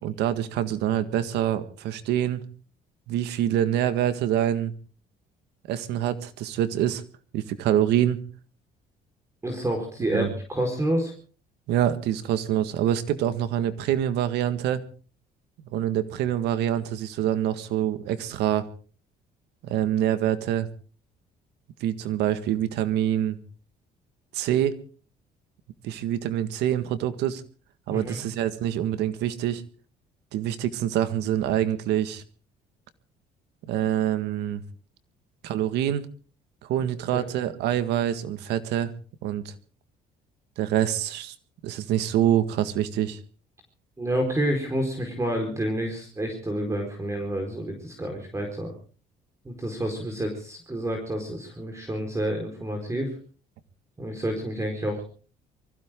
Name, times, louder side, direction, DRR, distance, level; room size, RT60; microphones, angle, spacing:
voice 1, 0.0-2.5 3.1-4.7 5.7-7.0 7.3-8.2 10.1-10.3 11.7-14.8 15.7-18.7 19.6-20.7 21.8-23.4 24.3-24.8 25.8-27.4 27.9-29.6 30.3-32.2 33.7-34.6 35.4-36.0 36.6-38.9 39.2-39.5 40.6-41.3 41.6-43.2, right 11 dB, 85° right, 11 dB, 1.8 m, -25 dB
voice 2, 9.4-11.1 27.9-28.2 37.1-37.2 44.0-48.7 49.4-53.1 54.0-55.0, right 1 dB, 15° right, 3 dB, 4.6 m, -29 dB
24.0 x 16.0 x 3.8 m, 0.39 s
cardioid pair, 110°, 17 cm